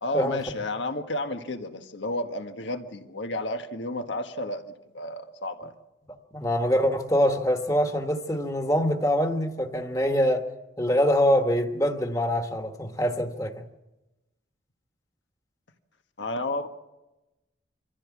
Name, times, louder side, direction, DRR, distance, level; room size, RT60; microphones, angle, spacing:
voice 1, 0.0-5.7 16.2-16.7, left 1 dB, 85° left, 1.5 m, -32 dB
voice 2, 6.3-10.4 10.8-13.6, equal, 20° left, 1.5 m, -24 dB
25.5 x 15.0 x 7.3 m
head